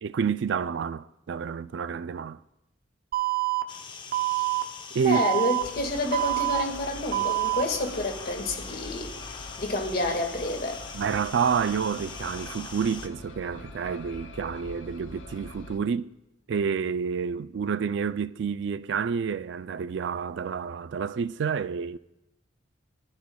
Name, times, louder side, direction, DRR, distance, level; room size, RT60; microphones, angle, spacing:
voice 1, 0.0-2.4 4.9-5.2 10.9-16.1 16.5-22.0, right 6 dB, 65° right, 0.3 m, -29 dB
Alarm, 3.1-3.6 4.1-4.6 5.1-5.6 6.1-6.6 7.1-7.6, right 20 dB, 50° right, 0.7 m, -26 dB
sound 1, 3.7-13.1, left 5 dB, 25° left, 0.7 m, -42 dB
voice 2, 5.0-9.1 9.6-10.8, left 1 dB, 50° left, 1.8 m, -29 dB
sound 2, 5.6-15.8, left 2 dB, 65° left, 0.9 m, -44 dB
28.0 x 12.0 x 2.3 m
head